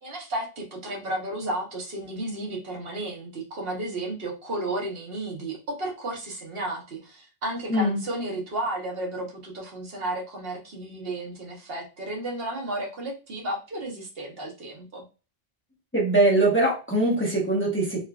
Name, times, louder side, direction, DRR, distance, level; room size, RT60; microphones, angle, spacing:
voice 1, 0.0-15.0, right 1 dB, 70° right, 0 dB, 1.2 m, -33 dB
voice 2, 15.9-18.1, right 2 dB, 15° left, -4 dB, 0.9 m, -22 dB
3.7 x 2.4 x 2.3 m, 0.32 s
omnidirectional pair, 1.0 m